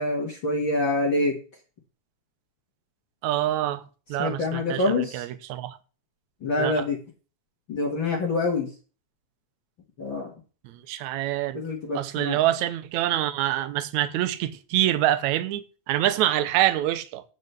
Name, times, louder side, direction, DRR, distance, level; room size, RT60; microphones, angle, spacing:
voice 1, 0.0-1.4 4.2-5.2 6.4-7.0 7.7-8.7 10.0-10.3 11.5-12.4, left 2 dB, 40° left, 2.4 m, -26 dB
voice 2, 3.2-3.8 4.1-4.8 5.1-5.8 6.6-6.8 10.9-11.6 11.9-17.2, right 13 dB, 75° right, 2.1 m, -25 dB
9.7 x 5.2 x 8.1 m
omnidirectional pair, 3.5 m